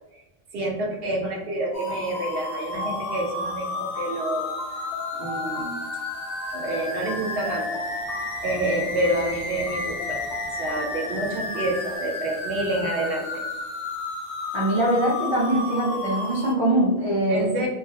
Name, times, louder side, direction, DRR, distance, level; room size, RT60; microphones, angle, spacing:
voice 1, 0.5-4.8 5.1-5.8 6.5-7.8 8.4-10.2 10.5-13.4 17.3-17.7, right 1 dB, 65° right, -1 dB, 0.8 m, -28 dB
sound 1, 1.7-16.5, left 3 dB, 50° left, 0.6 m, -32 dB
sound 2, 2.7-12.0, left 1 dB, 5° left, 0.7 m, -38 dB
voice 2, 14.5-17.4, right 1 dB, 35° right, -7 dB, 0.5 m, -22 dB
2.3 x 2.0 x 2.7 m, 1.0 s
omnidirectional pair, 1.1 m